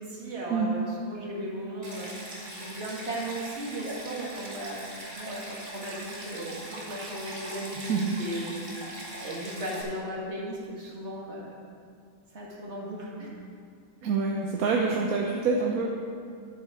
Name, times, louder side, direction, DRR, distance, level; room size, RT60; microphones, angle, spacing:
voice 1, 0.0-4.9 5.2-8.9 9.2-11.5 12.3-13.3, right 1 dB, 50° right, -4 dB, 2.2 m, -36 dB
Stream, 1.8-9.8, right 1 dB, 35° right, 1.6 m, -41 dB
voice 2, 7.8-8.2 14.0-15.9, right 4 dB, 85° right, 0 dB, 1.2 m, -26 dB
10.5 x 7.6 x 4.7 m, 2.3 s
omnidirectional pair, 1.5 m